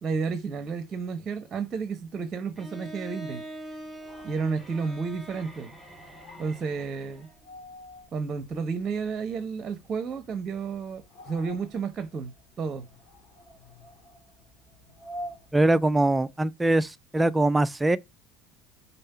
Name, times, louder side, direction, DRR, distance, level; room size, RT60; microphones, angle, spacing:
voice 1, 0.0-3.4 4.2-5.7 6.4-7.3 8.1-12.3 12.6-12.8, right 5 dB, 35° right, 0.9 m, -31 dB
Bowed string instrument, 2.6-7.4, right 1 dB, 5° left, 3.6 m, -44 dB
sound 1, 3.8-16.4, equal, 50° left, 1.9 m, -48 dB
voice 2, 15.5-18.0, right 2 dB, 10° right, 0.5 m, -22 dB
5.5 x 4.1 x 5.6 m
figure-of-eight pair, 65°, 0 cm